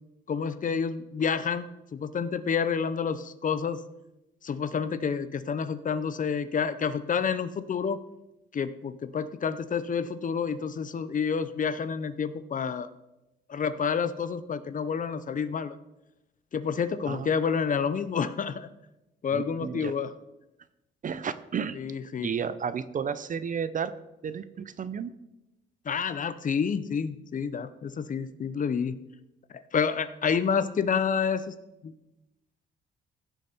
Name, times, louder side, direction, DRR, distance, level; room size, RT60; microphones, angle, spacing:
voice 1, 0.3-3.8 4.4-8.0 8.5-12.9 13.5-15.8 16.5-18.7 19.2-20.1 21.7-22.3 25.8-29.0 29.5-31.5 31.8-31.9, left 6 dB, 40° left, 13 dB, 0.7 m, -29 dB
voice 2, 19.3-19.9 21.0-21.8 22.2-23.9 24.2-25.1, right 7 dB, 40° right, 14 dB, 0.6 m, -32 dB
16.0 x 6.5 x 4.4 m, 0.95 s
cardioid pair, 90°, 20 cm